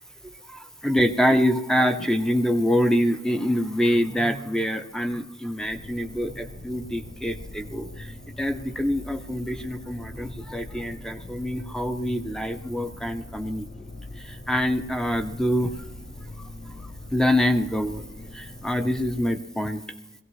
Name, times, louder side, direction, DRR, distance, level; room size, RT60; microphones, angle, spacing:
voice 1, 0.2-13.9 14.2-15.8 16.4-16.5 16.8-18.0 18.3-19.8, equal, 5° left, 7 dB, 0.5 m, -25 dB
sound 1, 5.6-19.3, left 1 dB, 40° left, 0.6 m, -42 dB
22.0 x 16.5 x 3.1 m, 1.0 s
head